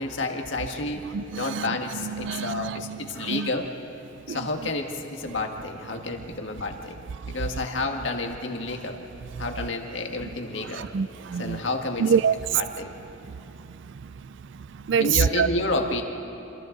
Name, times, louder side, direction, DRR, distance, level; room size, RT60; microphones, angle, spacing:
voice 1, 0.0-3.7 4.3-7.0 7.3-9.0 9.4-10.9 11.4-12.1 12.5-13.0 15.0-16.0, left 2 dB, 65° left, 1.8 m, -30 dB
voice 2, 1.1-3.5 4.3-4.4 7.2-7.4 10.7-11.6 12.0-12.3 13.3-15.5, right 7 dB, 60° right, 0.4 m, -27 dB
28.0 x 26.5 x 4.0 m
head